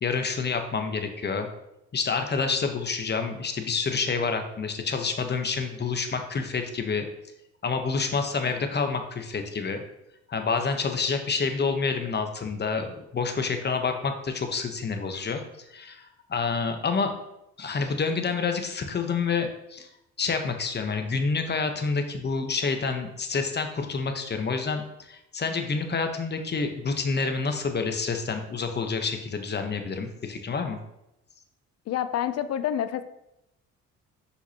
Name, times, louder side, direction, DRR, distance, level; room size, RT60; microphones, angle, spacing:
voice 1, 0.0-1.5 1.9-7.1 7.6-9.8 10.3-15.4 15.7-17.1 17.6-19.9 20.2-30.8, left 5 dB, 35° left, 6 dB, 0.9 m, -28 dB
voice 2, 31.9-33.0, left 10 dB, 55° left, 12 dB, 0.5 m, -28 dB
6.1 x 5.6 x 2.8 m, 0.86 s
cardioid pair, 90°, 30 cm